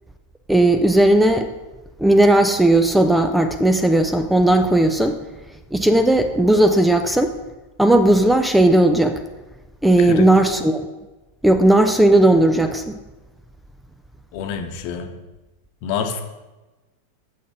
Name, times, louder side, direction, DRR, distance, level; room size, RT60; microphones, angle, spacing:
voice 1, 0.5-1.5 2.0-5.2 5.7-7.3 7.8-9.2 9.8-10.8 11.4-13.0, right 1 dB, 5° right, 7 dB, 0.5 m, -16 dB
voice 2, 10.0-10.3 14.3-15.1 15.8-16.2, left 6 dB, 45° left, 5 dB, 1.0 m, -27 dB
8.6 x 6.8 x 4.9 m, 1.1 s
figure-of-eight pair, 90°, 0 cm